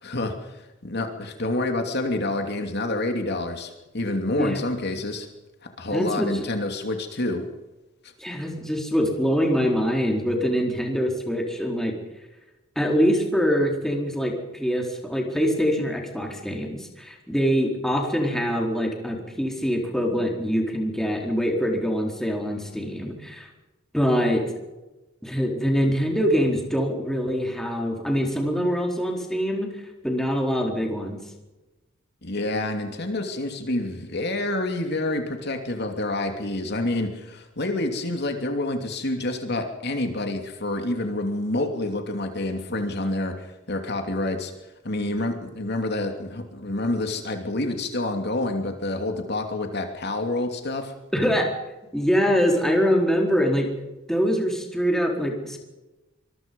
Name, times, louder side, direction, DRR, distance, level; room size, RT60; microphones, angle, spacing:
voice 1, 0.0-5.3 5.8-7.4 8.0-8.1 32.2-44.5 44.8-50.9, left 2 dB, 55° left, 4 dB, 2.9 m, -28 dB
voice 2, 5.9-6.5 8.2-11.9 12.8-23.5 23.9-24.4 25.2-29.7 30.0-31.2 45.0-45.1 51.1-51.5 51.9-53.7 54.1-55.6, equal, ahead, 1 dB, 4.3 m, -24 dB
25.5 x 22.5 x 5.5 m, 1.1 s
head